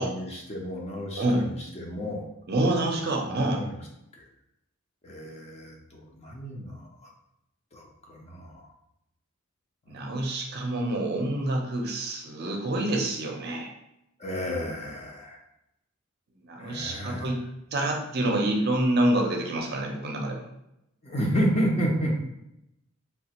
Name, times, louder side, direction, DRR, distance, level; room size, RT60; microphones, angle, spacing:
voice 1, 0.0-2.3 3.2-3.7 4.1-4.2 5.0-7.1 7.7-8.7 9.9-10.0 14.2-15.4 16.6-17.3 21.0-22.2, equal, 30° left, -1 dB, 0.6 m, -31 dB
voice 2, 2.5-3.6 9.9-13.7 16.4-17.4 17.7-20.5, right 1 dB, 50° right, 1 dB, 0.6 m, -27 dB
3.3 x 2.4 x 2.9 m, 0.82 s
head